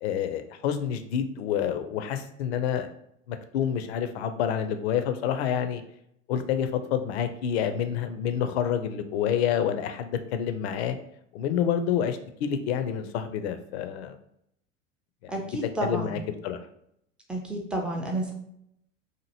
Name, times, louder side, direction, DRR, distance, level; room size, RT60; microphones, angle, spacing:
voice 1, 0.0-2.9 3.3-5.8 6.3-11.0 11.3-14.2 15.2-15.5 15.8-16.6, left 8 dB, 55° left, 9 dB, 0.5 m, -28 dB
voice 2, 15.3-16.2 17.3-18.3, right 1 dB, 5° right, 0 dB, 0.4 m, -31 dB
2.8 x 2.5 x 2.7 m, 0.74 s
figure-of-eight pair, 80°, 39 cm